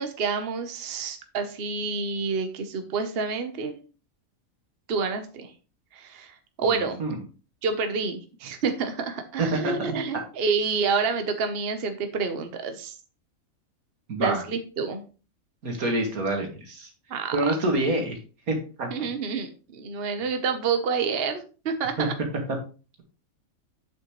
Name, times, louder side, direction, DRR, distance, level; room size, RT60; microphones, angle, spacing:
voice 1, 0.0-3.8 4.9-5.5 5.9-7.0 7.6-13.0 14.2-15.0 17.1-17.4 18.9-22.1, right 5 dB, 45° right, 7 dB, 1.1 m, -28 dB
voice 2, 6.6-7.2 9.4-9.9 14.1-14.4 15.6-16.9 17.3-18.2 18.5-19.1 22.0-22.1, right 2 dB, 90° right, 3 dB, 2.3 m, -27 dB
8.4 x 6.7 x 3.1 m, 0.35 s
omnidirectional pair, 1.5 m